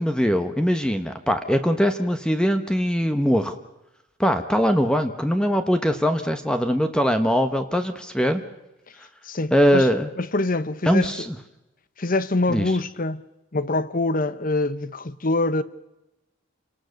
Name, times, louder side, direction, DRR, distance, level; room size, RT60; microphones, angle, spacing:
voice 1, 0.0-3.5 4.2-8.4 9.5-10.1 10.9-11.4 12.5-12.7, equal, 5° left, 1.1 m, -21 dB
voice 2, 9.2-9.9 10.2-11.3 12.0-13.2 13.5-15.6, left 2 dB, 40° left, 0.9 m, -25 dB
28.5 x 18.5 x 6.5 m
head